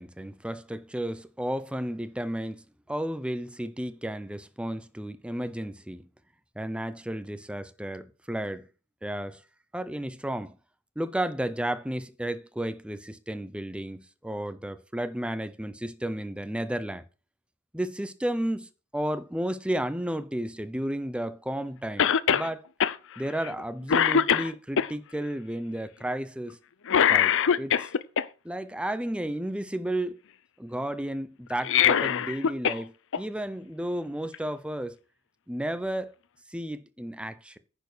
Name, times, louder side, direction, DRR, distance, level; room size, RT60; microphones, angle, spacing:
voice 1, 0.0-6.1 6.6-8.7 9.0-9.4 9.7-10.6 11.0-17.0 17.7-22.6 23.2-26.6 27.1-27.9 28.4-30.2 30.6-35.0 35.5-36.1 36.5-37.6, right 1 dB, 5° right, 0.8 m, -33 dB
Cough, 22.0-22.5 22.8-23.0 23.4-23.6 23.9-24.9 26.9-28.2 31.5-32.8 33.1-33.2 34.3-34.4, left 8 dB, 60° left, 0.6 m, -22 dB
10.0 x 6.9 x 6.2 m
head